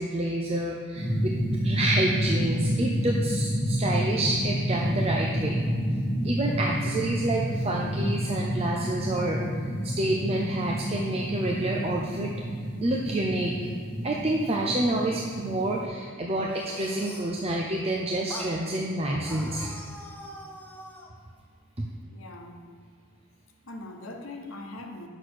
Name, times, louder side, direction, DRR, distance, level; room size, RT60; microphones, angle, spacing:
voice 1, 0.0-1.3 1.6-5.6 6.2-9.4 9.8-12.3 12.8-13.5 14.0-19.7 21.8-21.9, right 1 dB, 30° right, -1 dB, 0.6 m, -28 dB
sound 1, 0.9-15.9, equal, 30° left, 2.1 m, -29 dB
sound 2, 16.4-17.4 18.3-18.6 19.2-21.1, left 1 dB, 10° left, 0.8 m, -43 dB
voice 2, 22.1-22.6 23.6-25.1, left 2 dB, 70° left, 2 dB, 1.1 m, -41 dB
8.4 x 6.4 x 6.2 m, 2.1 s
head